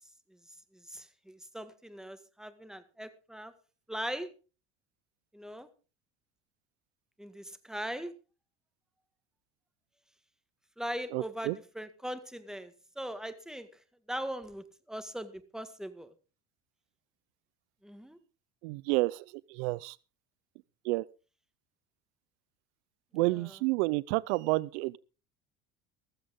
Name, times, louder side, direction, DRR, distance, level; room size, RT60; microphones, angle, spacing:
voice 1, 0.9-3.5 3.9-4.3 5.3-5.7 7.2-8.1 10.8-13.7 14.1-16.1 17.8-18.2 23.3-23.5, equal, ahead, 1.9 m, -40 dB
voice 2, 11.1-11.6 18.6-19.2 19.5-20.0 20.8-21.1 23.1-25.0, right 22 dB, 75° right, 0.6 m, -30 dB
15.0 x 14.5 x 3.8 m
supercardioid pair, 95°, 35 cm